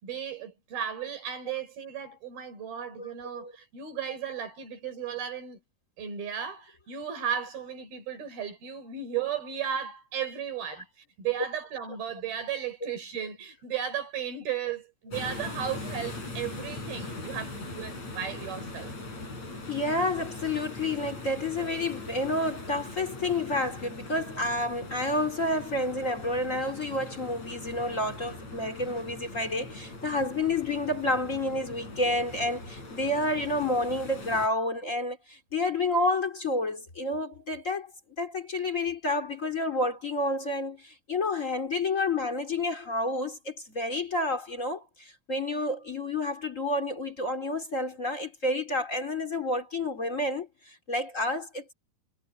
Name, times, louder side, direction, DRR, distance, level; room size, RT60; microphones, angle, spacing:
voice 1, 0.0-5.6 6.0-10.9 11.2-18.9, right 8 dB, 90° right, 6.9 m, -35 dB
sound 1, 15.1-34.5, left 2 dB, 45° left, 9.4 m, -41 dB
voice 2, 19.7-37.9 38.2-51.7, left 2 dB, 25° left, 2.5 m, -30 dB
omnidirectional pair, 4.2 m